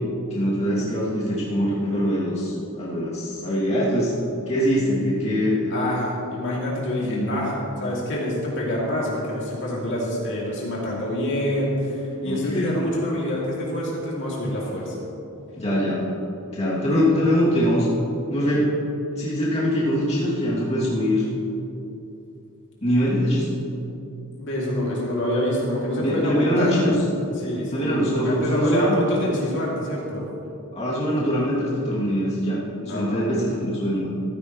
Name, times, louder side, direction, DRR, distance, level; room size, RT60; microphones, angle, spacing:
voice 1, 0.3-4.1 4.5-5.7 7.0-7.4 12.3-12.8 15.6-16.1 16.5-17.9 18.3-18.7 19.2-21.2 22.8-23.5 26.0-27.0 27.7-29.0 30.7-34.1, equal, 30° left, -8 dB, 2.7 m, -23 dB
voice 2, 5.7-7.5 7.8-14.9 24.4-26.7 27.4-28.0 28.2-30.3 32.9-33.2, left 1 dB, 55° left, -5 dB, 2.8 m, -26 dB
15.0 x 14.5 x 3.2 m, 2.8 s
head